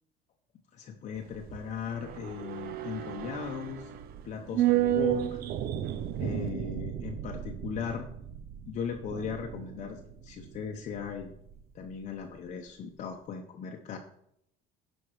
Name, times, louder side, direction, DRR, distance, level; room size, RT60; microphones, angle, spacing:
voice 1, 0.7-3.9 4.2-5.4 6.2-8.0 8.7-11.3 11.7-14.0, left 7 dB, 35° left, 2 dB, 0.9 m, -38 dB
sound 1, 1.2-11.6 11.9-12.0, right 12 dB, 50° right, 0.6 m, -33 dB
10.5 x 5.4 x 4.9 m, 0.72 s
cardioid pair, 160°, 21 cm